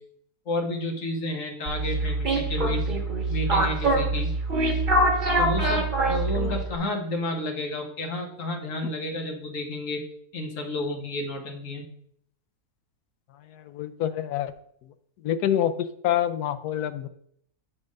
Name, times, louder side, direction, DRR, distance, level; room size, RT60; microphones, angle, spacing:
voice 1, 0.5-2.9 3.3-4.3 5.4-10.0 10.3-11.8, left 1 dB, 55° left, 2 dB, 1.6 m, -31 dB
sound 1, 1.7-6.8, right 2 dB, 35° right, 1.4 m, -24 dB
voice 2, 13.5-14.5 15.2-17.1, left 10 dB, 85° left, 12 dB, 1.2 m, -26 dB
8.0 x 3.6 x 6.4 m, 0.68 s
omnidirectional pair, 1.6 m